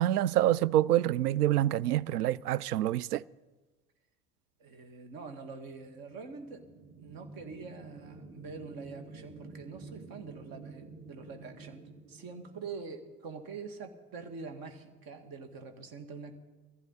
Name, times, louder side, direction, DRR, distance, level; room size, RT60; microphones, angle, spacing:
voice 1, 0.0-3.2, right 13 dB, 80° right, 0.5 m, -26 dB
voice 2, 4.6-6.7 7.0-16.3, right 4 dB, 50° right, 2.2 m, -45 dB
sound 1, 5.8-13.4, right 4 dB, 25° right, 1.9 m, -50 dB
21.5 x 15.0 x 4.1 m
figure-of-eight pair, 65°, 46 cm